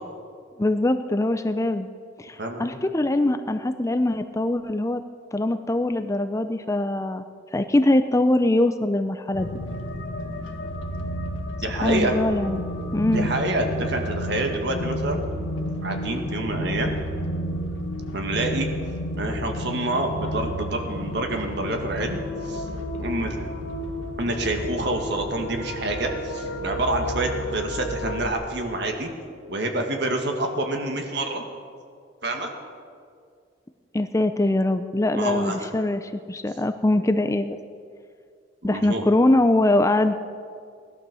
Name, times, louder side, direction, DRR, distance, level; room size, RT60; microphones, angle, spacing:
voice 1, 0.6-1.9 2.2-5.0 5.3-7.2 7.5-9.5 11.8-12.6 12.9-13.3 33.9-37.6 38.6-40.1, left 1 dB, 15° left, 9 dB, 0.5 m, -22 dB
voice 2, 2.4-2.7 11.6-12.1 13.1-15.2 15.8-16.9 18.1-18.7 19.1-22.2 22.4-22.7 22.9-23.5 24.2-29.1 29.5-31.4 32.2-32.5 35.2-35.7 38.6-39.1, right 2 dB, 60° right, 3 dB, 2.0 m, -27 dB
sound 1, 9.3-28.3, equal, 85° left, 1.6 m, -31 dB
18.0 x 12.0 x 6.9 m, 2.2 s
head